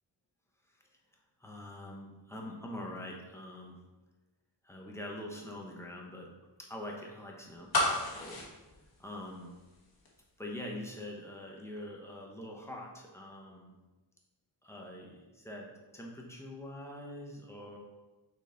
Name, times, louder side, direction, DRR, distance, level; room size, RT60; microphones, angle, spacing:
voice 1, 1.4-3.8 4.6-6.3 6.6-8.4 9.0-9.5 10.4-13.7 14.6-15.7 15.9-17.8, left 1 dB, 5° left, -1 dB, 0.9 m, -44 dB
sound 1, 7.7-9.8 10.1-10.2, left 1 dB, 55° left, 1.3 m, -32 dB
5.9 x 4.3 x 3.9 m, 1.1 s
wide cardioid pair, 170°, 44 cm